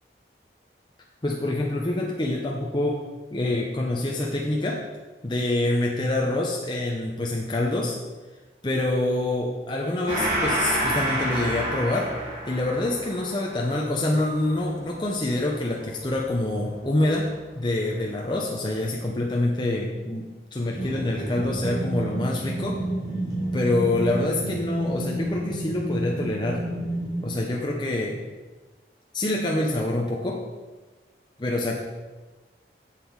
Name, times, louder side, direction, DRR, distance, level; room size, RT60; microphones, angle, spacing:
voice 1, 1.2-4.9 5.2-8.0 8.6-12.2 12.5-22.8 23.5-26.7 27.2-28.2 29.1-30.4 31.4-31.8, left 2 dB, 25° left, -1 dB, 0.7 m, -26 dB
Gong, 10.1-17.0, right 1 dB, 30° right, 2.1 m, -30 dB
sound 1, 20.7-27.5, right 1 dB, 70° right, 3.2 m, -30 dB
7.5 x 7.4 x 4.7 m, 1.2 s
head